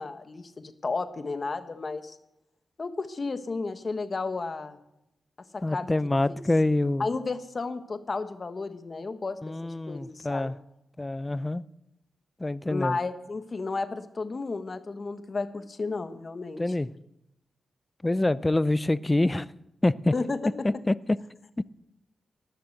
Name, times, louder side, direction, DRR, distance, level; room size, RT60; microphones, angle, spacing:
voice 1, 0.0-2.2 2.8-4.8 5.5-5.9 7.0-10.5 12.7-16.6 20.1-20.5, left 3 dB, 45° left, 1.3 m, -33 dB
voice 2, 5.6-7.1 9.4-10.5 11.0-11.6 12.4-13.0 16.6-16.9 18.0-19.5 19.8-20.1 20.6-21.2, left 2 dB, 25° left, 0.5 m, -26 dB
19.5 x 6.7 x 7.9 m
cardioid pair, 55°, 0 cm